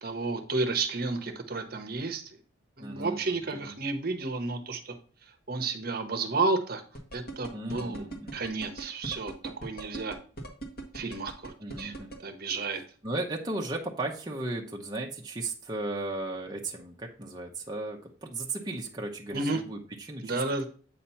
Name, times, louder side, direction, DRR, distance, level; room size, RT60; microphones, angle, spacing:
voice 1, 0.0-2.4 2.8-4.9 5.5-6.8 7.1-8.0 8.3-10.2 10.9-11.9 12.2-12.8 19.3-19.6 20.2-20.7, right 3 dB, 45° right, 6 dB, 0.9 m, -31 dB
voice 2, 2.8-3.8 7.5-8.5 11.6-12.1 13.0-20.4, right 2 dB, 20° right, 0 dB, 0.7 m, -36 dB
sound 1, 6.9-12.2, right 2 dB, 45° left, 1.5 m, -39 dB
8.5 x 2.9 x 5.5 m, 0.41 s
head